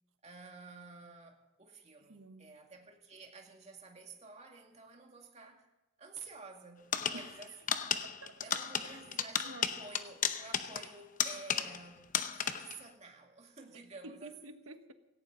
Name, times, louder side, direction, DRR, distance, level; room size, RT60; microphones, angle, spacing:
voice 1, 0.2-5.7 6.0-7.5 8.4-12.1 12.3-14.4, right 4 dB, 30° right, 2 dB, 2.2 m, -51 dB
voice 2, 2.0-2.6 7.1-7.4 8.0-8.4 8.8-9.0 9.4-9.7 14.0-14.9, right 2 dB, 75° right, 8 dB, 1.3 m, -50 dB
sound 1, 6.9-11.9 12.1-12.8, left 8 dB, 40° left, 0.8 m, -34 dB
17.0 x 17.0 x 3.9 m, 0.98 s
head